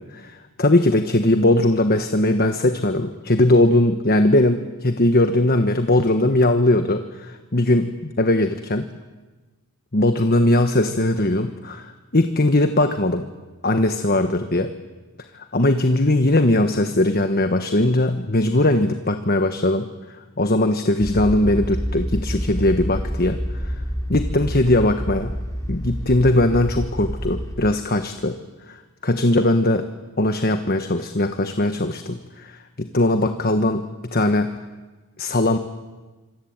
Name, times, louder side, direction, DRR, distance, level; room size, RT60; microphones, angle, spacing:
voice 1, 0.0-8.9 9.9-13.3 13.6-14.7 15.3-19.9 20.4-23.7 24.1-25.3 25.7-28.4 28.7-29.9 30.2-33.8 34.1-34.5 35.2-35.6, left 1 dB, 45° left, 8 dB, 1.3 m, -20 dB
sound 1, 21.0-27.5, equal, 15° left, 4.0 m, -28 dB
26.5 x 25.0 x 8.9 m, 1.2 s
head